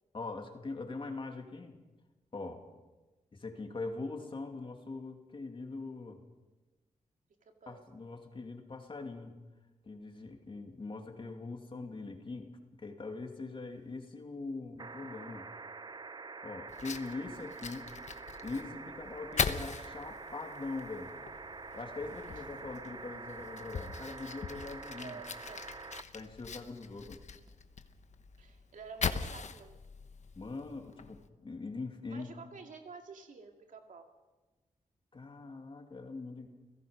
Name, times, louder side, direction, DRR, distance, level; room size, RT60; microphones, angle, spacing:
voice 1, 0.1-1.8 2.3-2.6 3.3-6.2 7.7-9.3 9.8-15.5 16.4-17.9 18.4-21.1 21.7-25.2 26.1-27.2 30.4-32.3 35.1-36.5, left 3 dB, 40° left, 3 dB, 2.7 m, -42 dB
voice 2, 7.4-7.9 22.3-22.9 25.0-25.6 28.4-29.8 32.1-34.1, right 5 dB, 75° right, 4 dB, 2.3 m, -50 dB
sound 1, 14.8-26.0 27.5-27.6, right 4 dB, 30° right, 0.7 m, -46 dB
Fire, 16.7-31.3, left 5 dB, 60° left, 1.1 m, -41 dB
30.0 x 16.5 x 5.2 m, 1.2 s
wide cardioid pair, 105°, 13 cm